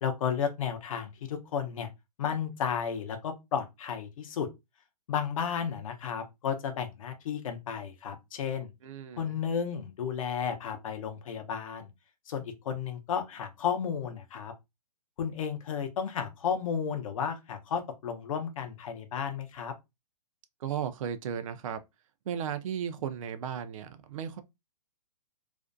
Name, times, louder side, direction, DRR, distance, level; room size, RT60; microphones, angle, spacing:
voice 1, 0.0-1.9 2.2-4.5 5.1-8.7 9.2-11.9 12.3-14.5 15.2-19.7, left 7 dB, 55° left, 0.7 m, -33 dB
voice 2, 8.8-9.4 20.6-21.8 22.3-24.4, right 8 dB, 55° right, 0.4 m, -35 dB
2.4 x 2.1 x 2.4 m
hypercardioid pair, 145°, 20 cm